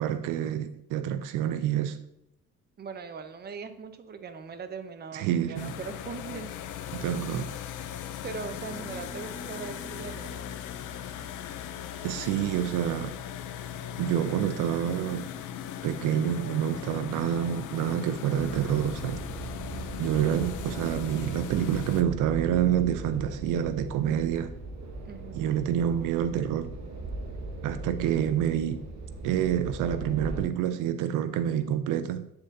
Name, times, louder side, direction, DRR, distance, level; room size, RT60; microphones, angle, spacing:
voice 1, 0.0-2.0 5.1-5.8 6.9-7.5 12.0-13.2 14.0-15.3 15.8-19.2 20.0-24.5 25.3-26.7 27.6-28.8 29.2-32.3, right 10 dB, 90° right, 0.5 m, -27 dB
voice 2, 2.8-6.8 8.2-10.5 25.1-25.4, right 5 dB, 35° right, 0.6 m, -40 dB
sound 1, 5.6-22.0, left 10 dB, 80° left, 0.5 m, -39 dB
sound 2, 8.6-13.1, left 1 dB, 10° right, 1.5 m, -49 dB
sound 3, 18.3-30.4, right 2 dB, 65° right, 1.0 m, -39 dB
9.5 x 3.8 x 2.7 m
cardioid pair, 90°, 30 cm